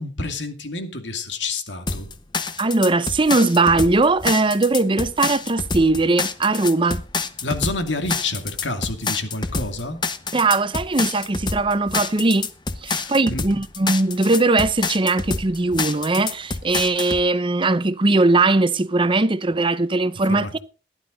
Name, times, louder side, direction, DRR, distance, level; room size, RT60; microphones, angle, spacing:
voice 1, 0.0-2.1 7.4-10.0 12.9-13.5 20.3-20.6, left 3 dB, 85° left, 2.4 m, -29 dB
sound 1, 1.9-17.2, left 4 dB, 25° left, 1.0 m, -27 dB
voice 2, 2.6-7.0 10.3-12.5 12.8-20.6, right 2 dB, 30° right, 0.7 m, -20 dB
15.5 x 11.5 x 3.9 m
head